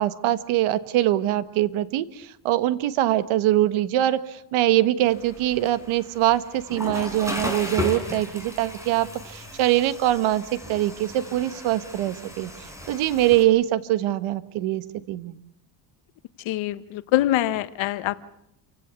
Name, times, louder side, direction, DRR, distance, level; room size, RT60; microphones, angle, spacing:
voice 1, 0.0-12.5 12.9-15.4, right 14 dB, 75° right, 14 dB, 1.5 m, -23 dB
Water / Toilet flush, 5.1-13.4, left 1 dB, 5° right, 4.9 m, -36 dB
voice 2, 16.5-18.2, left 14 dB, 70° left, 13 dB, 1.3 m, -24 dB
28.5 x 16.5 x 8.3 m, 0.77 s
cardioid pair, 135°, 48 cm